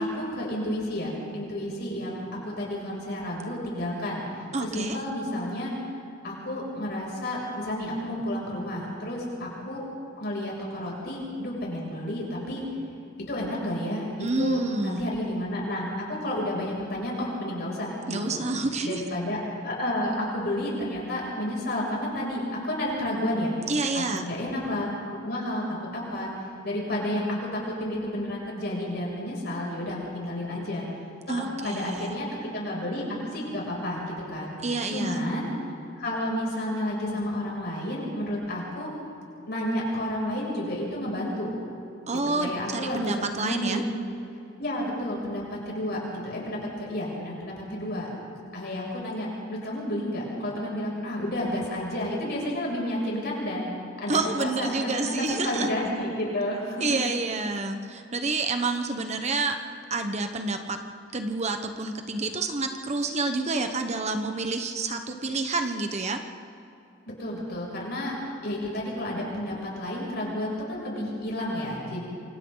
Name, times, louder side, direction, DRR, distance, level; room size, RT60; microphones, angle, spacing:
voice 1, 0.0-4.3 4.6-5.7 6.2-9.9 10.2-12.6 13.3-18.4 18.8-23.5 23.9-24.9 25.2-26.3 26.6-30.9 31.3-34.6 34.9-35.5 36.0-38.9 39.5-41.5 42.4-43.9 44.6-48.1 48.5-53.7 54.0-57.0 67.2-68.2 68.4-72.1, left 1 dB, 55° left, -3 dB, 7.1 m, -31 dB
voice 2, 4.5-5.0 14.2-15.1 18.1-19.0 23.7-24.3 31.3-32.1 34.6-35.2 42.1-43.8 54.1-55.7 56.8-59.6 59.9-60.8 61.1-66.2, right 3 dB, 35° right, 6 dB, 1.1 m, -28 dB
28.0 x 25.0 x 4.0 m, 2.7 s
head